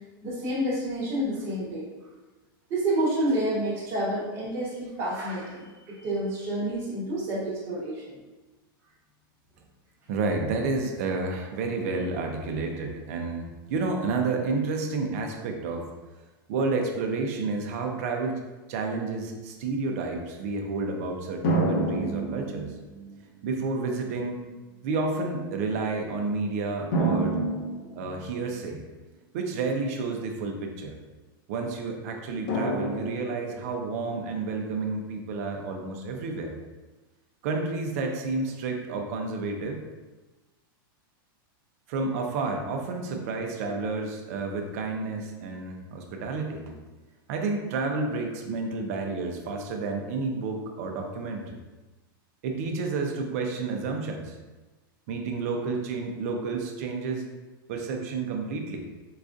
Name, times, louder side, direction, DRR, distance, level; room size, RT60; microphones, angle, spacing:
voice 1, 0.2-1.9 2.7-8.0, right 1 dB, 20° right, -7 dB, 1.0 m, -29 dB
voice 2, 10.1-15.9 16.5-18.4 18.7-22.7 23.4-24.4 24.8-27.4 28.0-28.8 29.3-31.0 31.5-36.5 37.4-39.8 41.9-46.8 47.3-51.6 52.4-54.4 55.1-57.2 57.7-58.8, right 3 dB, 40° right, 2 dB, 0.5 m, -30 dB
sound 1, 21.4-23.2 24.1-24.2 26.9-28.6 32.5-33.8, right 2 dB, 50° left, 0.8 m, -28 dB
4.7 x 2.4 x 2.5 m, 1.2 s
supercardioid pair, 175°, 12 cm